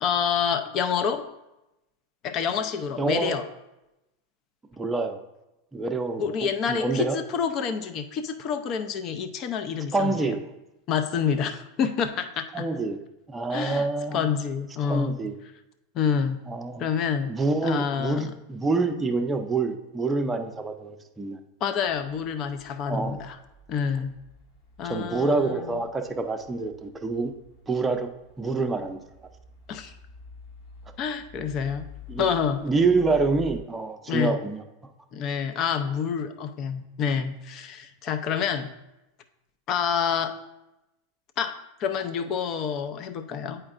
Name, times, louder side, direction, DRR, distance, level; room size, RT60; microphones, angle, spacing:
voice 1, 0.0-1.2 2.2-3.4 6.2-10.3 10.9-12.5 13.5-13.9 14.1-15.2 15.9-16.4 16.8-17.3 17.6-18.3 21.6-23.4 23.7-24.2 24.8-25.8 29.7-29.9 31.0-31.9 32.2-32.6 34.1-34.4 35.1-38.7 39.7-40.4 41.4-43.6, left 7 dB, 45° left, 8 dB, 0.6 m, -28 dB
voice 2, 3.0-3.4 4.8-5.2 5.7-6.3 6.7-7.2 9.9-10.4 12.5-13.0 13.3-14.3 14.9-15.4 16.5-16.8 17.3-21.4 22.9-23.2 24.8-27.3 27.7-28.1 28.4-29.0 32.1-32.3 32.6-34.6, right 3 dB, 15° right, 5 dB, 0.6 m, -26 dB
sound 1, 21.8-33.6, equal, 60° left, 1.5 m, -48 dB
8.6 x 4.4 x 2.5 m, 0.95 s
hypercardioid pair, 100°, 0 cm